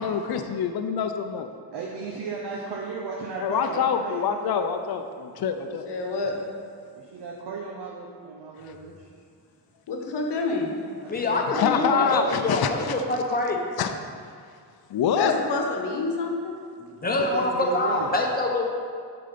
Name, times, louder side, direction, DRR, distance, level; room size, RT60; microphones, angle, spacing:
voice 1, 0.0-1.5 3.4-5.9 11.3-12.7 13.8-13.9 14.9-15.3, left 7 dB, 65° left, 7 dB, 0.6 m, -25 dB
voice 2, 1.7-4.6 6.9-9.1 11.0-12.2 17.0-18.1, right 4 dB, 75° right, -3 dB, 0.9 m, -35 dB
voice 3, 5.8-6.4 9.9-10.8 15.2-16.5, left 3 dB, 80° left, 2 dB, 1.0 m, -27 dB
voice 4, 11.1-13.6 16.8-18.7, left 2 dB, 20° left, 1 dB, 0.9 m, -25 dB
7.6 x 3.9 x 5.1 m, 2.2 s
cardioid pair, 100°, 40 cm